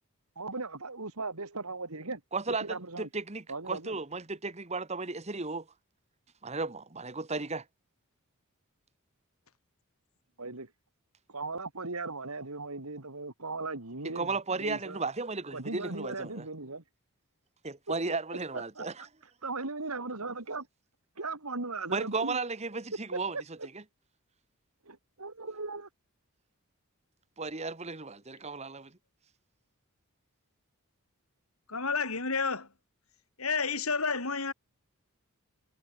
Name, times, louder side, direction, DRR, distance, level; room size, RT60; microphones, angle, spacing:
voice 1, 0.4-2.2 2.6-3.1 3.5-4.0 10.4-10.7 11.3-15.0 15.5-16.8 18.1-18.9 19.4-20.7 21.2-22.4 23.3-23.4 24.8-25.9, right 3 dB, 80° right, 3.1 m, -38 dB
voice 2, 2.3-5.7 6.4-7.6 14.1-16.5 17.6-19.0 21.9-23.4 27.4-28.9, right 3 dB, 30° right, 1.5 m, -35 dB
voice 3, 31.7-32.7 33.4-34.5, left 4 dB, 75° left, 5.1 m, -30 dB
head